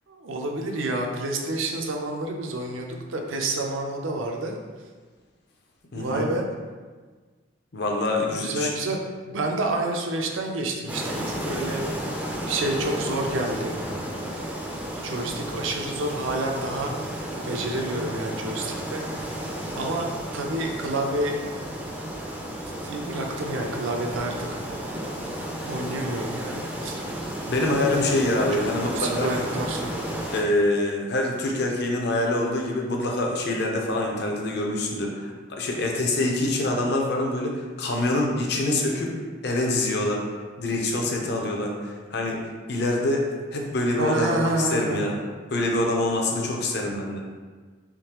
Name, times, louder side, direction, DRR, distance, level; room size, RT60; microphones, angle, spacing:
voice 1, 0.1-4.5 5.9-6.4 8.2-11.8 12.5-13.8 15.0-19.1 19.8-21.4 22.8-24.6 25.7-27.0 28.5-28.6 29.0-30.1 44.0-45.0, right 2 dB, 80° right, 2 dB, 0.5 m, -29 dB
voice 2, 5.9-6.3 7.7-8.7 27.5-29.3 30.3-39.1 39.4-40.2 40.6-42.4 42.7-45.2 45.5-47.2, left 2 dB, 55° left, 0 dB, 0.6 m, -25 dB
sound 1, 10.9-30.4, equal, 5° right, 0.3 m, -33 dB
3.7 x 3.1 x 2.9 m, 1.4 s
head